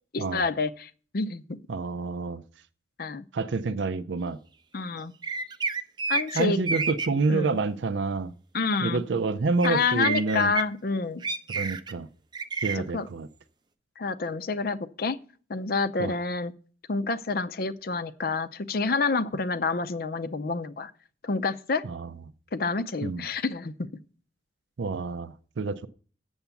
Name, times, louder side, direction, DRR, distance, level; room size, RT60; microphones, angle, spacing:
voice 1, 0.1-1.6 3.0-3.2 4.7-5.1 6.1-6.6 7.3-7.6 8.5-9.0 9.6-11.2 12.8-13.1 14.0-15.2 15.5-16.5 16.9-20.9 21.2-21.8 22.5-23.7, left 4 dB, 55° left, 0.6 m, -28 dB
voice 2, 1.7-2.4 3.3-4.4 6.3-8.3 8.8-10.5 11.5-12.1 12.6-13.3 16.0-16.1 21.8-22.1 23.0-23.2 24.8-25.9, right 3 dB, 80° right, 0.5 m, -28 dB
sound 1, 5.2-7.1 9.6-9.7 10.0-10.6 11.2-11.9 12.3-12.8, right 4 dB, 25° right, 0.5 m, -29 dB
8.0 x 7.1 x 7.0 m
head